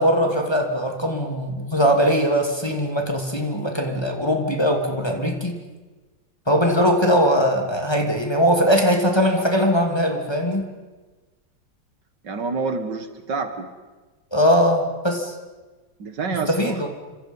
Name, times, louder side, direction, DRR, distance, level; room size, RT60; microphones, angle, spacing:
voice 1, 0.0-5.6 6.5-10.6 14.3-15.3 16.5-16.9, equal, 15° left, 2 dB, 2.5 m, -20 dB
voice 2, 12.2-13.7 16.0-16.9, right 4 dB, 70° right, 8 dB, 2.3 m, -28 dB
30.0 x 25.5 x 5.5 m, 1.2 s
omnidirectional pair, 2.0 m